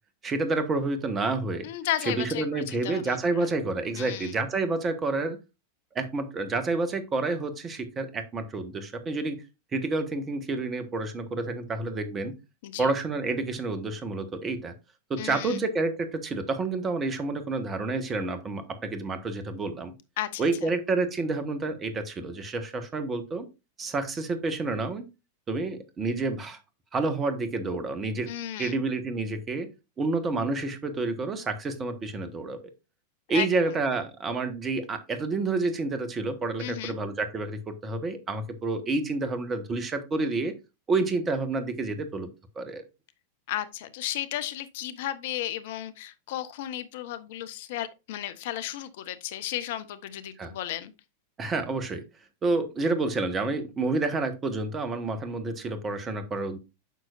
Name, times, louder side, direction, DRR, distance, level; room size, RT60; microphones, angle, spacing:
voice 1, 0.2-1.7 2.1-5.4 5.9-9.4 9.7-12.3 12.8-14.7 15.1-19.9 20.4-23.4 23.8-25.0 25.5-26.6 26.9-28.3 28.6-29.7 30.0-32.6 33.3-40.5 40.9-42.3 42.5-42.8 50.4-50.5 51.4-52.0 52.4-56.6, right 3 dB, 20° right, 1.3 m, -29 dB
voice 2, 1.6-3.5 3.9-4.4 12.6-12.9 15.2-15.6 20.2-20.7 28.3-28.7 33.3-33.5 36.6-37.0 43.5-50.9, left 12 dB, 50° left, 0.6 m, -34 dB
9.2 x 6.3 x 2.5 m
figure-of-eight pair, 90°, 0 cm